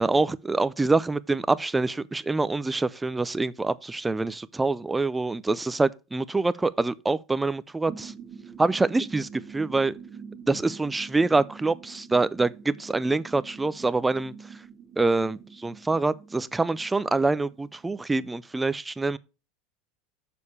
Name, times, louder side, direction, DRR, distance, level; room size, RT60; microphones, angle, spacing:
voice 1, 0.0-8.1 8.6-9.9 10.5-14.6 15.0-19.2, right 3 dB, 10° right, 0.4 m, -25 dB
sound 1, 7.9-18.3, right 6 dB, 40° right, 1.3 m, -46 dB
6.9 x 6.5 x 4.2 m
supercardioid pair, 155°, 0 cm